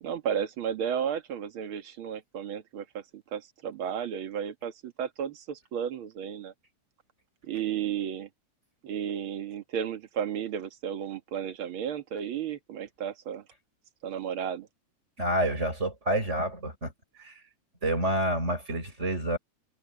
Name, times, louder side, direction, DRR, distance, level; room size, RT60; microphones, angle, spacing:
voice 1, 0.0-6.5 7.4-8.3 8.8-13.4 14.0-14.7, right 8 dB, 45° right, 1.9 m, -33 dB
voice 2, 15.2-16.9 17.2-17.3 17.8-19.4, right 1 dB, 20° right, 6.8 m, -28 dB
omnidirectional pair, 4.1 m